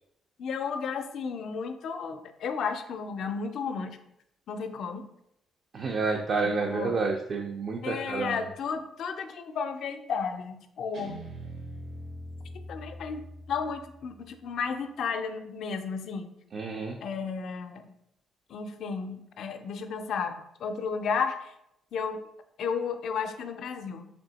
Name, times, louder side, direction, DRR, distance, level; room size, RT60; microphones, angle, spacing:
voice 1, 0.4-4.0 4.5-5.1 6.4-7.0 7.8-11.2 12.7-16.3 17.0-17.8 18.5-21.5 21.9-22.2 22.6-24.1, left 5 dB, 70° left, 8 dB, 0.4 m, -33 dB
voice 2, 5.7-8.4 16.5-17.0, right 4 dB, 55° right, 2 dB, 0.4 m, -29 dB
Guitar, 10.9-14.1, right 1 dB, 70° right, 0.9 m, -42 dB
3.4 x 2.7 x 3.9 m, 0.82 s
cardioid pair, 90°, 0 cm